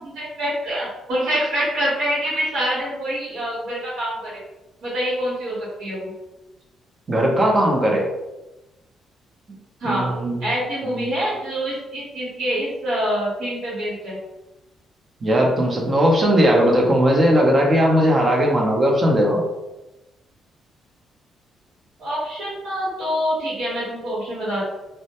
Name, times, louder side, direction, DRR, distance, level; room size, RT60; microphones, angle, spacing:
voice 1, 0.0-4.4 4.8-6.1 9.8-10.1 10.4-14.2 22.0-24.6, equal, 70° right, -9 dB, 1.1 m, -25 dB
voice 2, 7.1-8.0 9.8-10.4 10.9-11.1 15.2-19.4, equal, 35° right, -1 dB, 0.6 m, -18 dB
2.1 x 2.1 x 2.9 m, 1.0 s
cardioid pair, 90°, 0 cm